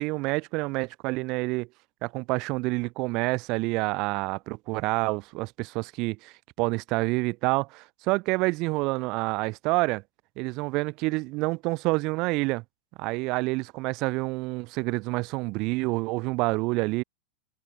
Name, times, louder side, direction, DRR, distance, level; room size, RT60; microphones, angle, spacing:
voice 1, 0.0-1.7 2.0-10.0 10.4-12.6 13.0-17.0, right 24 dB, 40° right, 4.7 m, -28 dB
supercardioid pair, 150°, 0 cm